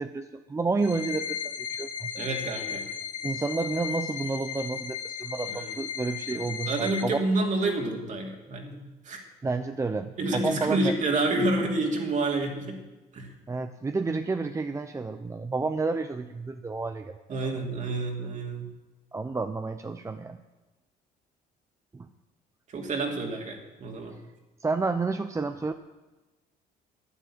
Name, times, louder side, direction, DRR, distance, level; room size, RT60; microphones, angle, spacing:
voice 1, 0.0-2.1 3.2-7.2 9.4-10.9 13.5-17.2 19.1-20.4 21.9-22.1 24.6-25.7, right 3 dB, 15° right, 8 dB, 0.6 m, -30 dB
sound 1, 0.8-7.0, left 7 dB, 45° left, 2.6 m, -35 dB
voice 2, 2.2-2.9 5.5-5.8 6.3-9.2 10.2-12.8 13.1-13.3 17.3-18.7 22.7-24.2, right 2 dB, 45° right, 2 dB, 2.9 m, -29 dB
11.0 x 10.0 x 8.7 m, 1.1 s
cardioid pair, 110°, 17 cm